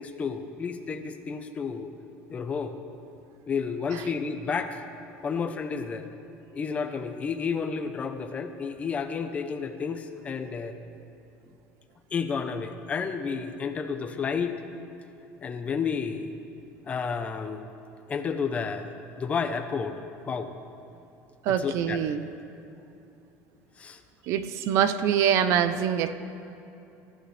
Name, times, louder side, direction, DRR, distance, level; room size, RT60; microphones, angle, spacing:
voice 1, 0.0-1.9 2.3-2.7 3.5-4.9 5.2-6.1 6.5-10.7 12.1-14.6 15.4-16.3 16.9-17.7 18.1-20.0 20.3-20.5 21.5-22.0 23.8-24.0, left 5 dB, 25° left, 7 dB, 0.9 m, -31 dB
voice 2, 21.4-22.3 24.3-26.1, right 9 dB, 55° right, 11 dB, 0.7 m, -24 dB
27.0 x 15.0 x 3.4 m, 2.8 s
cardioid pair, 165°, 6 cm